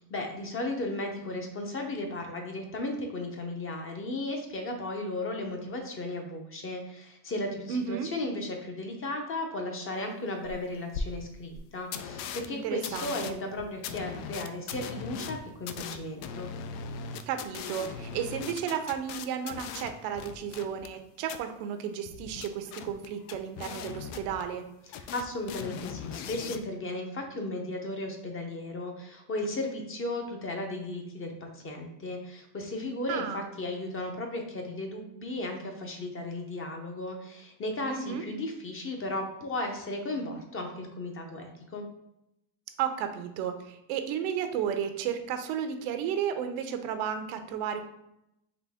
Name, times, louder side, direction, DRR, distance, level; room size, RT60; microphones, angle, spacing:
voice 1, 0.1-16.5 24.9-41.8, left 2 dB, 25° left, 3 dB, 0.6 m, -35 dB
voice 2, 7.7-8.1 12.5-13.4 17.3-24.6 33.1-33.5 37.9-38.2 42.8-47.8, right 8 dB, 75° right, 8 dB, 0.7 m, -33 dB
sound 1, 10.4-10.5 10.9-11.0 11.5-11.6 11.9-12.5 12.8-21.0 21.3-21.4 22.1-24.7 24.9-26.6, left 7 dB, 75° left, 0.6 m, -39 dB
3.9 x 2.7 x 3.5 m, 0.83 s
supercardioid pair, 120°, 50 cm